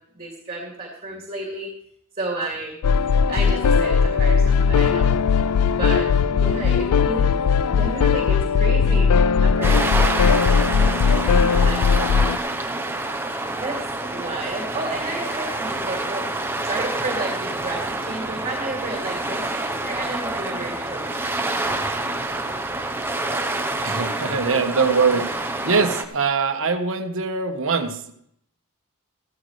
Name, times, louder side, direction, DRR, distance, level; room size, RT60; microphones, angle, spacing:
voice 1, 0.1-1.7 2.1-2.8 3.3-5.5 5.7-6.1 6.4-7.3 7.7-10.1 11.3-11.8 13.6-13.8 14.1-16.2 16.6-21.2, right 2 dB, 30° right, -2 dB, 2.6 m, -31 dB
sound 1, 2.8-12.4, left 6 dB, 80° left, 0.4 m, -18 dB
sound 2, 9.6-26.1, right 2 dB, 10° right, 0.9 m, -27 dB
voice 2, 23.8-25.3 25.6-28.1, right 5 dB, 60° right, 4 dB, 1.2 m, -22 dB
15.0 x 13.5 x 3.2 m, 0.69 s
head